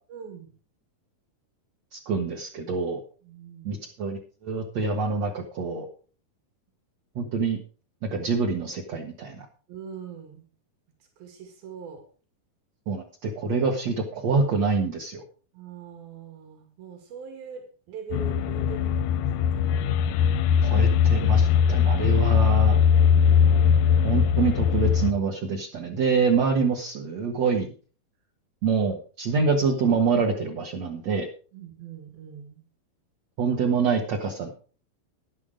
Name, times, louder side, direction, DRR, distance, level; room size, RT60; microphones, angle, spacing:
voice 1, 0.1-0.5 3.2-3.8 9.7-10.5 11.2-12.1 15.5-19.2 19.5-19.6 31.5-32.6, right 6 dB, 90° right, 4 dB, 4.3 m, -42 dB
voice 2, 1.9-3.0 3.7-5.9 7.2-7.6 8.0-9.4 12.9-15.2 20.6-22.8 24.0-27.7 28.6-31.3 33.4-34.5, right 4 dB, 55° right, 0 dB, 2.4 m, -26 dB
sound 1, 18.1-25.1, left 7 dB, 80° left, 1.9 m, -20 dB
12.0 x 9.9 x 5.1 m, 0.39 s
omnidirectional pair, 4.2 m